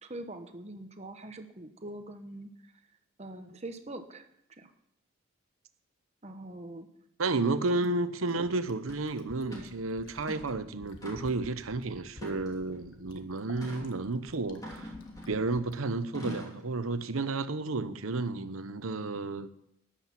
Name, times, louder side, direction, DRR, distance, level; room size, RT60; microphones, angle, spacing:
voice 1, 0.0-2.5 3.2-4.2 4.6-4.7 6.2-6.9 7.8-8.0, right 1 dB, 30° right, 1.0 m, -43 dB
voice 2, 7.2-14.9 15.3-19.5, right 3 dB, 85° right, 0.9 m, -32 dB
Fill (with liquid), 7.7-15.8 17.1-17.2, left 1 dB, 65° left, 1.5 m, -52 dB
sound 1, 8.9-9.0 9.5-9.7 10.2-10.6 11.0-11.5 12.2-12.8 13.6-13.9 14.6-15.5 16.1-16.6, left 1 dB, 15° left, 3.0 m, -43 dB
13.5 x 10.0 x 5.9 m
head